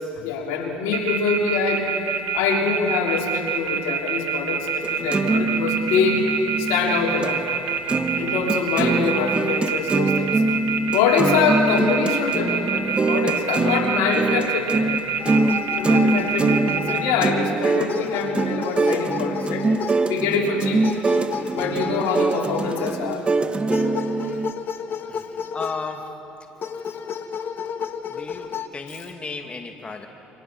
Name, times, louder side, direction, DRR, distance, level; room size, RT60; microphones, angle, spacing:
voice 1, 0.0-1.9 2.3-6.2 6.6-7.4 8.2-10.4 10.9-14.9 15.8-19.7 20.1-20.8 21.5-23.3, left 5 dB, 80° left, 0 dB, 3.4 m, -24 dB
sound 1, 0.9-17.1, right 8 dB, 70° right, 1.9 m, -26 dB
sound 2, 4.8-7.3 7.7-24.5, right 3 dB, 25° right, 1.2 m, -24 dB
sound 3, 15.2-17.5 17.9-20.2 20.8-23.1 23.7-26.2 26.6-28.7, left 7 dB, 50° left, 1.4 m, -32 dB
voice 2, 25.1-26.0 28.1-30.1, left 4 dB, 25° left, 4 dB, 2.4 m, -35 dB
29.0 x 25.5 x 6.1 m, 2.9 s
supercardioid pair, 85°, 4 cm